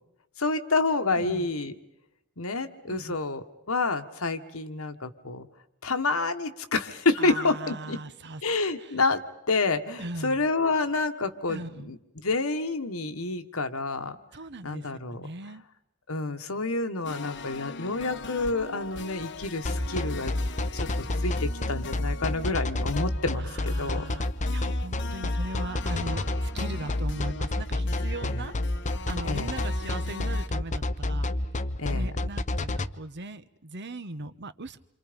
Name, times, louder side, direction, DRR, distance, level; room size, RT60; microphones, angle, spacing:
voice 1, 0.4-1.7 2.4-5.5 5.8-8.0 8.4-9.2 9.5-12.0 12.2-14.2 14.6-15.3 16.1-20.3 20.7-20.9 21.2-24.0 28.2-28.3 29.2-29.5 31.8-32.1, left 3 dB, 75° left, 7 dB, 1.7 m, -28 dB
voice 2, 1.1-1.5 2.9-3.2 7.2-8.4 8.8-9.0 10.0-10.5 11.5-12.0 14.3-15.6 23.3-28.6 29.1-31.3 31.9-34.8, right 2 dB, 55° right, 12 dB, 1.1 m, -39 dB
sound 1, 17.0-30.5, left 4 dB, 55° left, 1.1 m, -41 dB
sound 2, 19.7-32.9, left 1 dB, 35° left, 0.8 m, -28 dB
28.0 x 26.5 x 5.3 m, 0.82 s
head